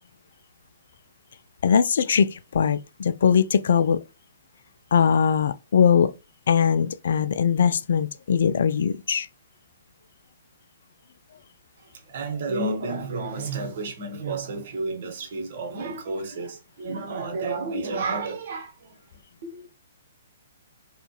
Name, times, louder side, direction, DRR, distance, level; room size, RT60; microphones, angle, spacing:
voice 1, 1.6-4.0 4.9-6.1 6.5-9.3, left 7 dB, 60° left, 0.3 m, -21 dB
voice 2, 11.8-19.7, right 3 dB, 50° right, 1.1 m, -31 dB
4.2 x 2.4 x 3.0 m
figure-of-eight pair, 120°, 0 cm